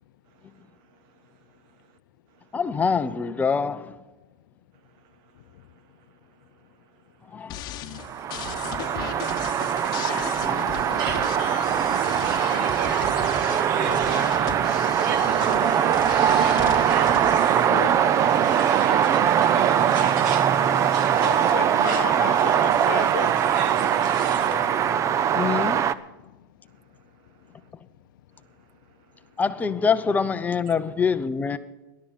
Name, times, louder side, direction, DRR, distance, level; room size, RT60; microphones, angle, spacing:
voice 1, 0.5-1.4 1.8-2.0 2.3-2.4 5.0-5.4 5.7-7.5 27.3-27.6 28.6-28.7 29.1-29.3, right 7 dB, 45° right, 1.1 m, -63 dB
voice 2, 2.5-4.0 7.3-7.6 10.0-10.7 11.7-11.9 19.8-20.3 20.7-20.8 24.4-25.0 25.3-25.8 29.4-31.6, left 5 dB, 15° left, 0.7 m, -26 dB
sound 1, 7.5-17.9, left 10 dB, 35° left, 1.3 m, -36 dB
sound 2, 8.0-25.9, right 9 dB, 25° right, 0.5 m, -22 dB
sound 3, 11.0-24.7, right 6 dB, 65° right, 1.9 m, -36 dB
voice 3, 13.7-14.3 21.2-23.3, left 13 dB, 70° left, 0.7 m, -33 dB
18.5 x 11.5 x 4.2 m
supercardioid pair, 135°, 11 cm